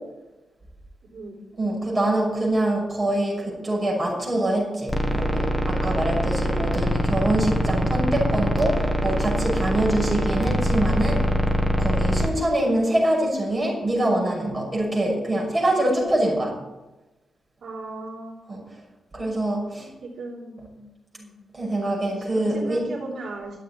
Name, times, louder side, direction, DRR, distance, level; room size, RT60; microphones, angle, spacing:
voice 1, 1.6-11.3 11.8-16.5 18.5-18.6 19.1-19.9 21.5-22.8, right 1 dB, 15° right, -4 dB, 6.3 m, -24 dB
sound 1, 4.9-12.3, equal, 10° left, 1.5 m, -23 dB
voice 2, 17.6-18.4 20.0-20.9 21.1-21.3 22.2-23.6, right 2 dB, 60° right, -2 dB, 3.2 m, -37 dB
12.0 x 8.2 x 10.0 m, 1.0 s
wide cardioid pair, 170°, 0 cm